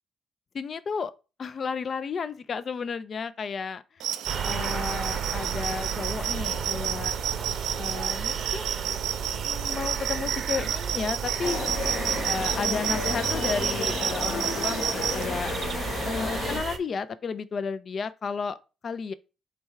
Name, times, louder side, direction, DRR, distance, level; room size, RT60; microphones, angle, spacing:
voice 1, 0.5-1.1 1.4-4.0 4.4-7.2 7.8-9.1 9.4-11.6 12.2-15.5 16.0-18.6 18.8-19.1, left 5 dB, 50° left, 0.4 m, -33 dB
sound 1, 4.0-15.3, right 10 dB, 85° right, 0.4 m, -31 dB
sound 2, 4.3-16.8, right 6 dB, 55° right, 0.7 m, -33 dB
sound 3, 11.4-16.6, left 4 dB, 65° left, 1.1 m, -32 dB
3.4 x 3.1 x 4.5 m
cardioid pair, 90°, 0 cm